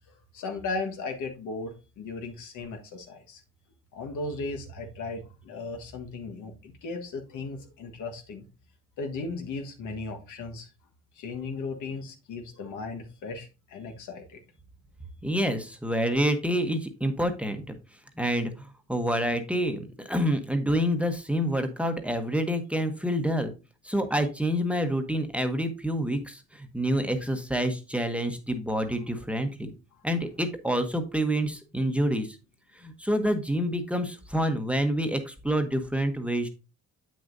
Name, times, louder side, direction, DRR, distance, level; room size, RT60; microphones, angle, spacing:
voice 1, 0.3-3.4 3.9-8.5 9.0-10.7 11.1-14.4, left 3 dB, 80° left, 3 dB, 1.5 m, -36 dB
voice 2, 15.2-17.7 18.2-23.5 23.8-29.7 30.0-32.4 32.7-36.5, equal, 5° right, 7 dB, 1.0 m, -27 dB
7.8 x 6.3 x 2.7 m, 0.30 s
cardioid pair, 90°, 30 cm